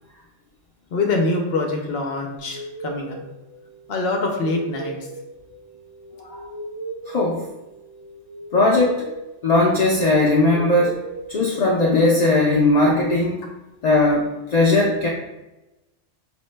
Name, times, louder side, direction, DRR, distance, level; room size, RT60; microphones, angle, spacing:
voice 1, 0.9-3.2 3.9-5.0, left 2 dB, 60° left, 2 dB, 0.7 m, -24 dB
sound 1, 2.4-12.1, right 2 dB, 90° right, 1.1 m, -37 dB
voice 2, 7.1-7.4 8.5-9.1 9.4-10.9 11.3-13.4 13.8-15.1, left 2 dB, 80° left, -3 dB, 0.3 m, -18 dB
5.2 x 2.1 x 3.2 m, 1.0 s
omnidirectional pair, 1.3 m